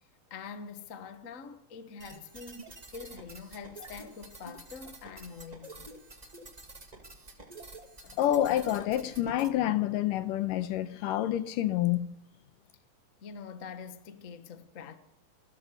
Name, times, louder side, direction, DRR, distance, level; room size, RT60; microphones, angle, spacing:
voice 1, 0.3-5.9 13.2-15.0, left 6 dB, 55° left, 0.8 m, -45 dB
sound 1, 2.0-9.5, right 2 dB, 20° right, 1.2 m, -49 dB
voice 2, 8.2-12.1, left 12 dB, 90° left, 2.7 m, -28 dB
28.5 x 13.5 x 6.7 m
omnidirectional pair, 3.7 m